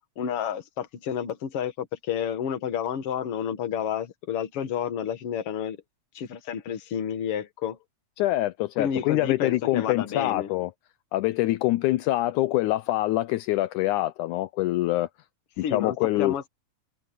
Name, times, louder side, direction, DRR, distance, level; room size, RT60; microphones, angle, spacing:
voice 1, 0.2-5.8 6.1-7.8 8.8-10.5 15.6-16.5, left 8 dB, 55° left, 2.2 m, -30 dB
voice 2, 8.2-10.7 11.1-15.1 15.7-16.4, left 17 dB, 80° left, 2.0 m, -25 dB
omnidirectional pair, 3.6 m